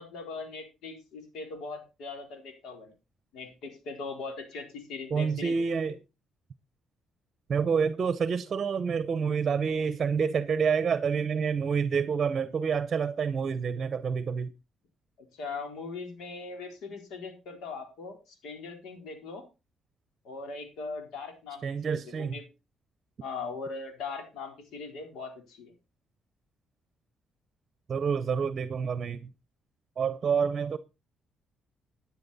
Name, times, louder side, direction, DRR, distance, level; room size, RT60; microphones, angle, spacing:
voice 1, 0.0-2.9 3.3-5.7 15.3-19.4 20.2-21.6 21.9-22.4 23.2-25.7, left 4 dB, 80° left, 3.9 m, -40 dB
voice 2, 5.1-6.0 7.5-14.5 21.6-22.3 27.9-29.2 30.0-30.8, right 6 dB, 45° right, 0.8 m, -28 dB
12.0 x 9.8 x 4.2 m
cardioid pair, 90°, 0 cm